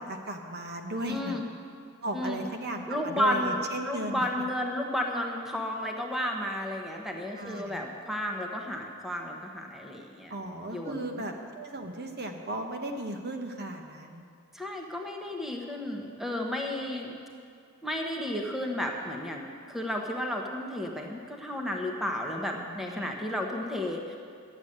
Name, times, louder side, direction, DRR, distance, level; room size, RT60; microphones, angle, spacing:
voice 1, 0.0-1.4 2.0-4.2 7.4-7.8 10.3-14.2 22.6-23.2, right 1 dB, 50° right, 4 dB, 1.0 m, -36 dB
voice 2, 1.1-1.4 2.1-2.4 2.9-10.3 10.7-11.2 14.5-17.2 17.8-24.2, left 1 dB, ahead, 1 dB, 1.0 m, -32 dB
11.5 x 8.0 x 8.7 m, 2.4 s
head